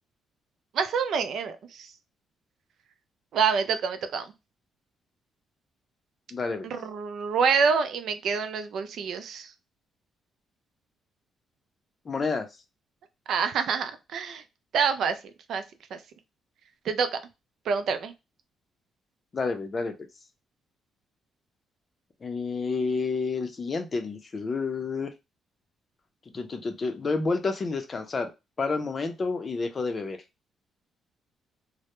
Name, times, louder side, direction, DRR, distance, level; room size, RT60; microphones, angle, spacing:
voice 1, 0.7-1.9 3.3-4.2 6.6-9.5 13.3-14.4 14.7-15.2 15.5-15.6 15.9-16.0 16.9-17.1 17.7-18.1, right 6 dB, 70° right, 9 dB, 0.3 m, -26 dB
voice 2, 6.3-6.7 12.1-12.5 19.3-19.9 22.2-25.1 26.3-28.3 28.6-30.2, left 4 dB, 40° left, 7 dB, 0.5 m, -29 dB
2.1 x 2.0 x 2.9 m, 0.24 s
cardioid pair, 90°, 0 cm